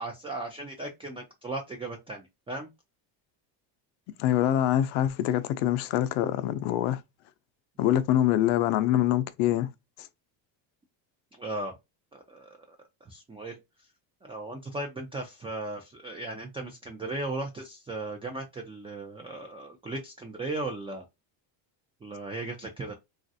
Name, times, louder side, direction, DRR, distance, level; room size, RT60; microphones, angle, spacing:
voice 1, 0.0-2.7 11.4-11.7 12.1-13.6 14.2-21.0 22.0-23.0, right 2 dB, 15° right, 0.3 m, -37 dB
voice 2, 4.2-7.0 7.8-9.7 10.0-10.1, left 12 dB, 85° left, 0.6 m, -25 dB
3.1 x 2.5 x 2.6 m
cardioid pair, 125°, 47 cm